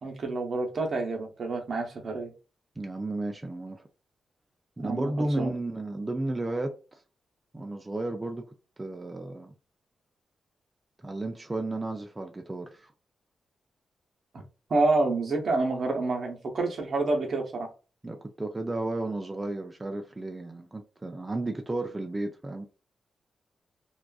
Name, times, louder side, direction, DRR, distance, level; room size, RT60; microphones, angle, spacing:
voice 1, 0.0-2.3 4.8-5.5 14.7-17.7, right 3 dB, 65° right, 0.7 m, -28 dB
voice 2, 2.8-3.8 4.8-7.0 7.5-8.5 8.8-9.5 11.0-12.9 18.0-22.7, right 2 dB, 25° right, 0.4 m, -33 dB
2.4 x 2.2 x 2.3 m
supercardioid pair, 50°, 0 cm